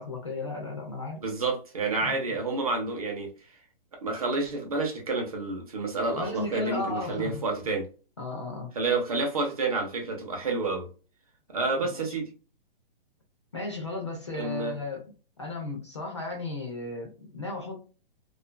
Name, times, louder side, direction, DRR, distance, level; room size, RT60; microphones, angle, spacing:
voice 1, 0.0-1.2 2.0-2.2 6.1-7.4 8.2-8.7 11.8-12.2 13.5-15.0 15.4-17.8, left 2 dB, 30° left, 0 dB, 0.4 m, -35 dB
voice 2, 1.2-3.3 4.0-7.9 8.7-10.9 11.5-12.3 14.4-14.7, right 3 dB, 40° right, 2 dB, 0.7 m, -29 dB
2.4 x 2.3 x 2.2 m, 0.35 s
hypercardioid pair, 180°, 29 cm